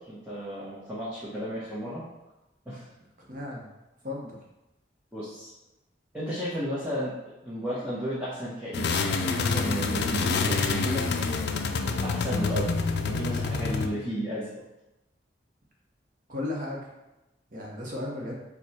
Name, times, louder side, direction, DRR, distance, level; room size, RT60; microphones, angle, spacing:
voice 1, 0.1-2.0 2.7-2.8 5.1-5.5 6.1-7.1 7.4-11.1 12.0-12.7 13.0-14.5, equal, 5° right, -10 dB, 0.9 m, -33 dB
voice 2, 3.2-3.7 4.0-4.4 16.3-16.8 17.5-18.4, left 2 dB, 45° right, -3 dB, 0.9 m, -35 dB
sound 1, 8.7-13.9, left 4 dB, 60° left, 0.4 m, -27 dB
4.8 x 2.3 x 4.2 m, 0.98 s
head